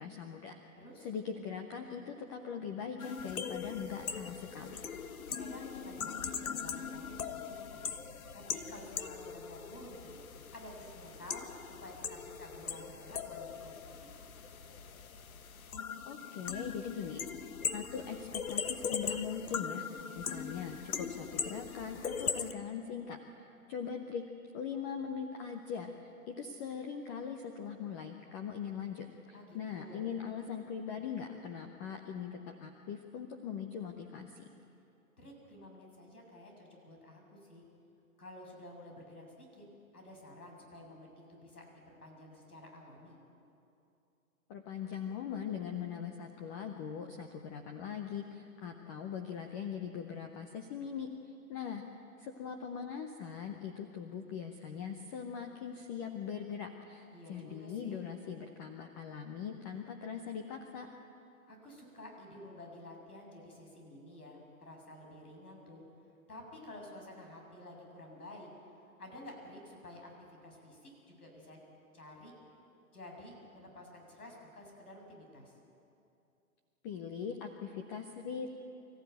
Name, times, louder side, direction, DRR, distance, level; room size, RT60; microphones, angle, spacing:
voice 1, 0.0-0.6 1.0-4.8 16.1-17.3 17.7-23.2 23.7-24.2 24.5-34.5 44.5-51.1 51.5-51.8 52.2-60.9 76.8-78.5, left 7 dB, 10° left, 5 dB, 0.4 m, -41 dB
voice 2, 0.7-1.1 5.3-7.9 8.3-10.2 10.5-14.1 29.3-30.0 35.2-37.6 38.2-39.6 39.9-43.2 57.1-58.0 61.5-65.8 66.3-68.5 69.0-71.6 71.9-72.3 72.9-75.6, left 1 dB, 85° left, 1 dB, 7.1 m, -51 dB
sound 1, 3.0-22.5, left 6 dB, 70° left, 1.4 m, -40 dB
25.0 x 15.0 x 9.2 m, 2.7 s
hypercardioid pair, 130°, 44 cm